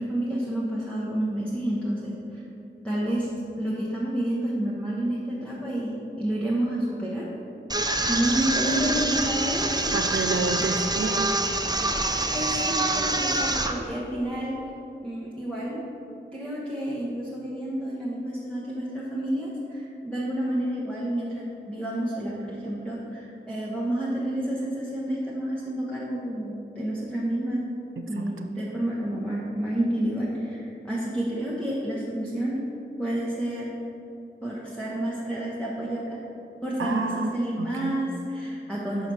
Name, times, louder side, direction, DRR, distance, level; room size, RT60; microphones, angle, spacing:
voice 1, 0.0-2.4 2.8-3.3 3.6-7.3 8.1-9.9 12.3-14.6 15.0-15.8 16.3-27.7 28.1-32.6 33.0-33.7 34.4-36.2 36.6-39.1, right 1 dB, 5° left, -7 dB, 0.9 m, -29 dB
sound 1, 7.7-13.7, right 2 dB, 20° right, 0.5 m, -26 dB
voice 2, 9.9-11.4 28.0-28.5 36.8-38.0, right 3 dB, 80° right, 4 dB, 0.4 m, -30 dB
5.7 x 4.0 x 6.1 m, 2.7 s
wide cardioid pair, 60°, 21 cm